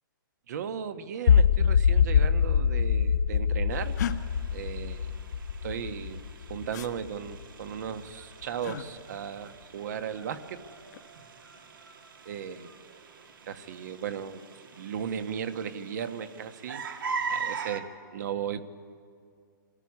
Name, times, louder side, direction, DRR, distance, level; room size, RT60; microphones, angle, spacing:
voice 1, 0.5-3.9 4.5-5.2 5.6-6.2 6.5-10.6 12.2-12.9 13.5-14.4 14.7-16.8 17.3-18.6, right 8 dB, 55° right, 10 dB, 1.3 m, -36 dB
sound 1, 1.3-7.3, left 7 dB, 75° left, 2.0 m, -24 dB
sound 2, 3.7-17.8, right 5 dB, 75° right, 2.5 m, -42 dB
sound 3, 4.0-4.2 6.7-6.9 8.6-8.9 10.6-11.1, left 9 dB, 55° left, 1.2 m, -34 dB
24.5 x 15.5 x 9.7 m, 2.3 s
hypercardioid pair, 155°, 11 cm